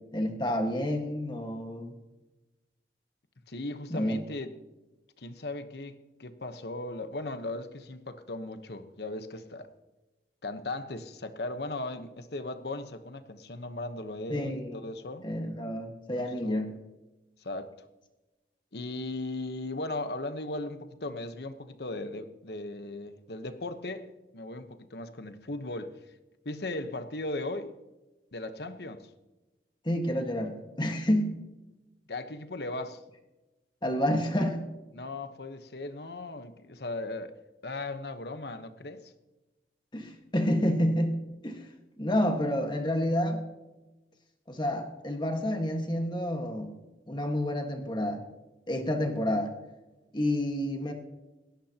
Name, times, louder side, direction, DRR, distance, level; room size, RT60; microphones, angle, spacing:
voice 1, 0.1-1.9 3.9-4.2 14.3-14.8 15.2-16.7 29.8-31.4 33.8-34.6 39.9-41.6 42.0-43.4 44.5-46.7 47.1-48.2 48.7-49.5 50.1-50.9, left 1 dB, 25° left, 1.6 m, -29 dB
voice 2, 3.5-4.5 5.2-9.7 10.4-15.3 16.2-16.7 17.4-17.7 18.7-26.0 26.4-27.7 28.3-29.1 32.1-33.0 34.9-37.3 37.6-39.1, left 2 dB, 70° left, 1.1 m, -37 dB
18.5 x 17.0 x 2.9 m
head